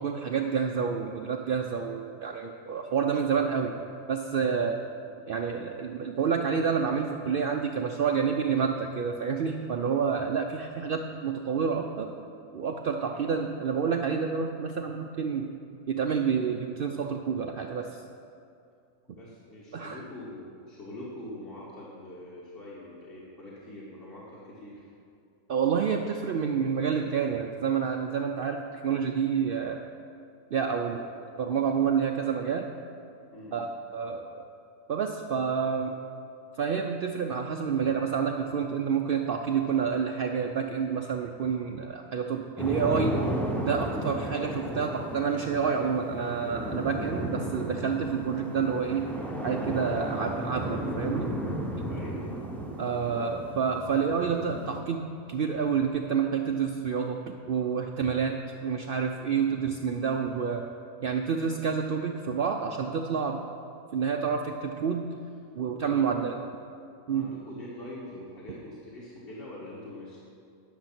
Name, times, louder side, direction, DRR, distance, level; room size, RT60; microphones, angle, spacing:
voice 1, 0.0-3.7 4.1-4.7 5.3-12.1 12.5-15.5 15.9-18.0 19.7-20.0 25.5-28.6 28.8-29.8 30.5-31.0 31.4-32.7 33.5-33.7 33.9-34.4 34.9-35.9 36.6-43.2 43.6-49.1 49.4-51.3 52.8-60.6 61.0-63.4 63.9-65.1 65.5-66.3 67.1-67.3, right 6 dB, 80° right, 2 dB, 0.5 m, -28 dB
voice 2, 19.1-24.9 33.3-33.6 51.9-52.3 64.2-64.4 65.8-66.3 67.1-70.2, left 1 dB, 40° left, -7 dB, 1.6 m, -44 dB
sound 1, 42.6-54.8, equal, ahead, 0.4 m, -34 dB
10.5 x 6.7 x 5.9 m, 2.5 s
omnidirectional pair, 1.5 m